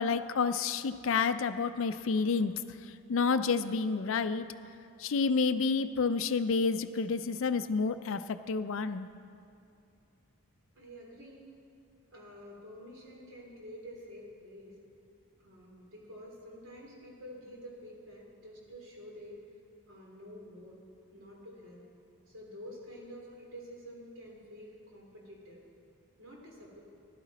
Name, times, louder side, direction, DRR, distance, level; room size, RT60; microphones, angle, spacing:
voice 1, 0.0-2.5 2.8-4.5 5.0-9.1, left 5 dB, 60° left, 10 dB, 0.4 m, -29 dB
voice 2, 10.8-11.5 12.1-14.8 15.4-19.4 19.9-20.8 21.1-21.8 22.3-25.6 26.2-26.8, equal, 60° right, -3 dB, 3.0 m, -49 dB
15.5 x 12.0 x 4.1 m, 2.5 s
head